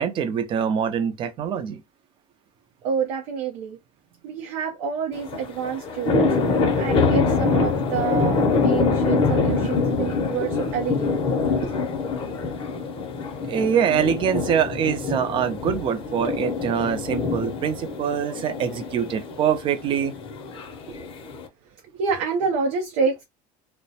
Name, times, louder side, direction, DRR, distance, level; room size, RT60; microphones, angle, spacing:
voice 1, 0.0-1.8 13.5-20.1, right 8 dB, 30° right, 0.4 m, -24 dB
voice 2, 2.8-3.8 4.2-6.4 6.8-11.2 11.6-11.8 21.0-21.1 21.7-23.2, right 6 dB, 75° right, 0.6 m, -28 dB
sound 1, 5.1-21.5, left 4 dB, 30° left, 0.6 m, -25 dB
2.3 x 2.1 x 2.7 m
cardioid pair, 150°, 17 cm